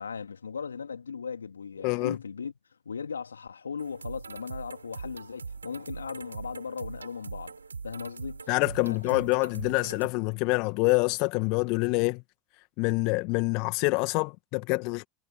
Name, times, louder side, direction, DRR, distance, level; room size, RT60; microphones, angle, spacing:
voice 1, 0.0-2.5 2.8-7.6 7.8-8.5 8.9-9.2, left 6 dB, 80° left, 2.6 m, -37 dB
voice 2, 1.8-2.1 8.5-12.2 12.8-15.0, left 30 dB, 50° left, 1.8 m, -26 dB
sound 1, 3.8-10.1, right 5 dB, 85° right, 7.1 m, -41 dB
figure-of-eight pair, 80°, 0 cm